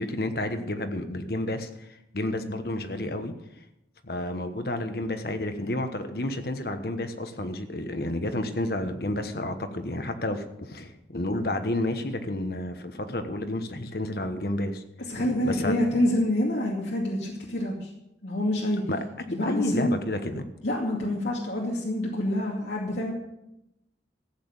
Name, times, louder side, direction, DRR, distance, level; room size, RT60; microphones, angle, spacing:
voice 1, 0.0-3.3 4.0-14.8 15.4-15.7 18.9-19.0 19.4-20.5, left 1 dB, 55° left, 8 dB, 1.2 m, -30 dB
voice 2, 15.1-17.9 18.2-18.8 19.3-19.9 20.6-23.1, left 1 dB, 85° left, -2 dB, 2.4 m, -27 dB
14.5 x 8.6 x 7.1 m, 0.86 s
head